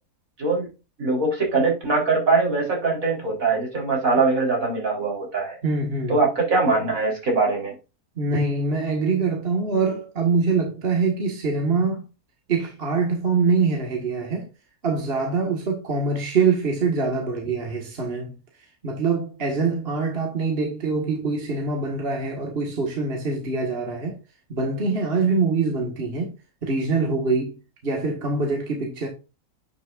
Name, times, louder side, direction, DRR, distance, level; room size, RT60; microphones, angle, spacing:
voice 1, 1.0-5.6 6.1-7.7, right 3 dB, 65° right, 4.3 m, -22 dB
voice 2, 5.6-6.2 8.2-12.0 12.5-14.5 14.8-18.3 18.8-24.2 24.5-26.3 26.6-27.6 27.8-29.1, right 4 dB, 40° right, 1.9 m, -24 dB
10.0 x 6.3 x 2.5 m
omnidirectional pair, 1.6 m